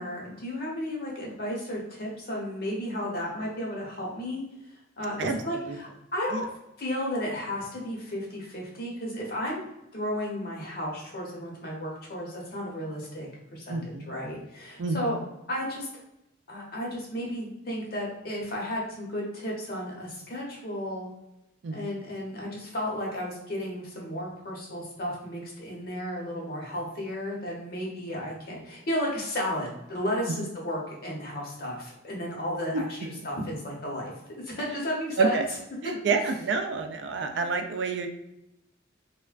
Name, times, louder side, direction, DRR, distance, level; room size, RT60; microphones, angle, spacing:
voice 1, 0.0-4.4 5.0-6.4 6.8-9.6 9.9-15.2 15.5-15.9 16.5-21.1 21.7-34.1 34.4-35.4 37.2-37.5, equal, 50° left, -2 dB, 0.8 m, -33 dB
voice 2, 13.7-14.1 14.8-15.2 21.6-21.9 35.2-35.4 35.8-38.1, right 4 dB, 60° right, 6 dB, 0.3 m, -28 dB
3.2 x 2.1 x 2.4 m, 0.87 s
head